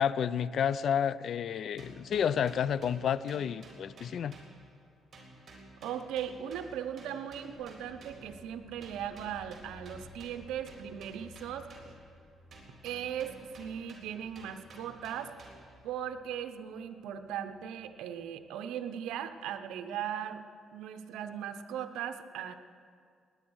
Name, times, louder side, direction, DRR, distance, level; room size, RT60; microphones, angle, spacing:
voice 1, 0.0-4.4, left 8 dB, 65° left, 18 dB, 0.4 m, -30 dB
sound 1, 1.8-4.9 5.1-8.4 8.8-12.2 12.5-15.8, right 2 dB, 45° right, 3.8 m, -54 dB
voice 2, 5.8-11.7 12.8-15.3 15.8-20.4 20.7-22.5, right 9 dB, 90° right, 8 dB, 0.7 m, -38 dB
sound 2, 7.5-19.5, left 2 dB, 30° left, 4.3 m, -58 dB
19.5 x 9.8 x 6.3 m, 2.2 s
cardioid pair, 90°, 0 cm